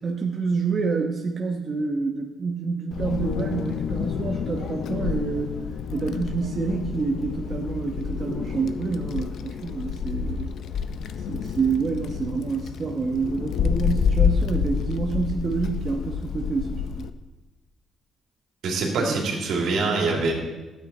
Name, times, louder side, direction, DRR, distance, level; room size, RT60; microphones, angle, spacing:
voice 1, 0.0-5.6 5.9-10.5 11.2-17.1 19.0-19.3, right 4 dB, 40° right, 0 dB, 1.0 m, -28 dB
Wind, 2.9-17.1, left 7 dB, 70° left, 0.5 m, -28 dB
voice 2, 18.6-20.3, right 3 dB, 75° right, 0 dB, 2.6 m, -24 dB
12.0 x 8.8 x 4.3 m, 1.1 s
cardioid pair, 90°, 0 cm